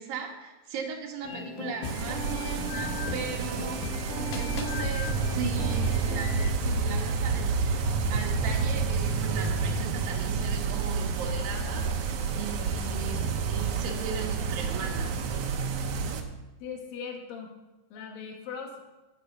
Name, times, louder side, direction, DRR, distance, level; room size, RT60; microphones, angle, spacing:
voice 1, 0.0-3.8 4.3-7.8 8.1-15.3, right 5 dB, 90° right, 0 dB, 3.4 m, -38 dB
sound 1, 1.2-6.5, left 4 dB, 70° left, 2.6 m, -36 dB
sound 2, 1.8-16.2, right 5 dB, 70° right, 2.1 m, -29 dB
voice 2, 16.6-17.5 17.9-18.8, left 6 dB, 85° left, 2 dB, 3.2 m, -39 dB
15.0 x 5.9 x 6.6 m, 1.1 s
omnidirectional pair, 3.9 m